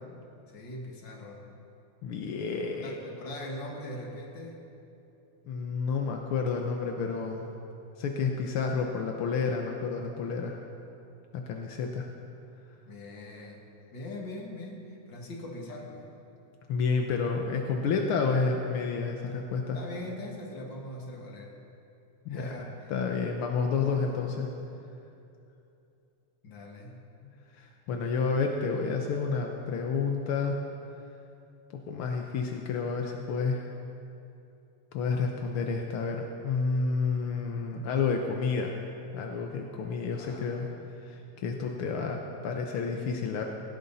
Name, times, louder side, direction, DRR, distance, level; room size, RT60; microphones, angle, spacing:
voice 1, 0.5-1.4 2.8-4.6 12.9-13.6 13.9-16.1 19.7-21.6 22.3-22.9 23.7-24.2 26.4-27.1 40.1-40.9, left 1 dB, 40° left, 0 dB, 2.2 m, -41 dB
voice 2, 2.0-3.0 5.5-7.4 8.0-10.6 11.5-12.1 16.7-19.8 22.2-22.5 22.9-24.5 27.5-30.6 31.9-33.7 34.9-38.7 39.1-40.6 41.0-43.4, left 5 dB, 65° left, 2 dB, 1.3 m, -30 dB
18.0 x 17.5 x 4.1 m, 2.8 s
omnidirectional pair, 3.5 m